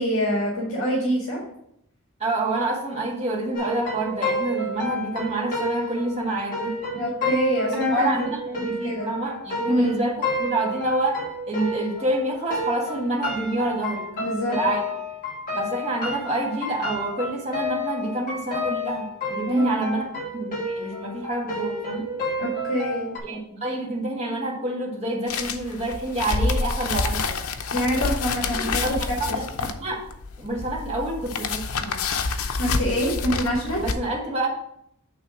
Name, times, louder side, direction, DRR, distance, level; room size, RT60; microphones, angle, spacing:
voice 1, 0.0-1.4 6.9-8.3 8.6-9.1 9.6-10.0 14.2-14.6 19.5-19.9 22.4-23.1 27.7-29.2 32.6-33.8, equal, 65° left, -3 dB, 1.9 m, -25 dB
voice 2, 2.2-6.8 7.9-14.0 14.5-14.8 15.5-20.1 20.3-22.1 23.2-27.3 28.6-28.9 29.2-30.0 30.4-32.0 33.8-34.5, right 2 dB, 30° right, -2 dB, 1.7 m, -28 dB
sound 1, 3.5-12.2 12.5-23.2, left 1 dB, 40° left, 2.8 m, -30 dB
sound 2, 25.3-33.9, left 4 dB, 90° left, 0.6 m, -28 dB
8.7 x 3.4 x 5.8 m, 0.75 s
head